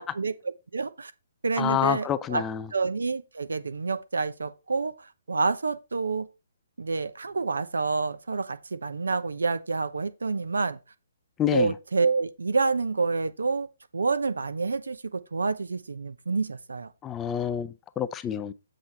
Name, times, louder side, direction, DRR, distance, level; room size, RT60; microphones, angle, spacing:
voice 1, 0.2-1.1 1.4-2.4 2.7-4.9 5.3-6.3 6.8-10.8 11.5-13.7 13.9-16.9, right 4 dB, 85° right, 0.9 m, -28 dB
voice 2, 1.6-2.7 11.4-11.7 17.0-18.5, left 10 dB, 15° left, 0.5 m, -28 dB
7.9 x 5.1 x 4.1 m
hypercardioid pair, 140°, 0 cm